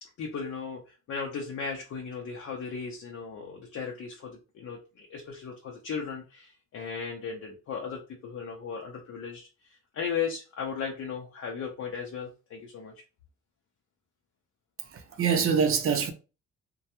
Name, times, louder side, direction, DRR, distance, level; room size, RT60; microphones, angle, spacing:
voice 1, 0.0-12.9, left 6 dB, 55° left, 0.6 m, -36 dB
voice 2, 14.9-16.1, right 6 dB, 45° right, 0.5 m, -25 dB
2.2 x 2.2 x 2.8 m
cardioid pair, 90°, 30 cm